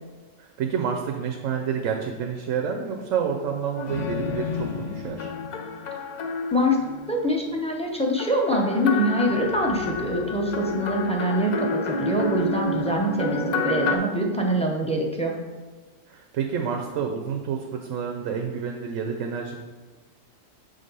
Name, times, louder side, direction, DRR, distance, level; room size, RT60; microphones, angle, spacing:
voice 1, 0.4-5.3 16.1-19.6, right 7 dB, 90° right, 2 dB, 1.0 m, -29 dB
sound 1, 3.8-7.3 8.2-14.0, left 3 dB, 55° left, 0.5 m, -29 dB
voice 2, 6.5-6.8 7.1-15.4, equal, 5° left, 0 dB, 0.6 m, -24 dB
6.7 x 3.5 x 5.3 m, 1.3 s
omnidirectional pair, 1.3 m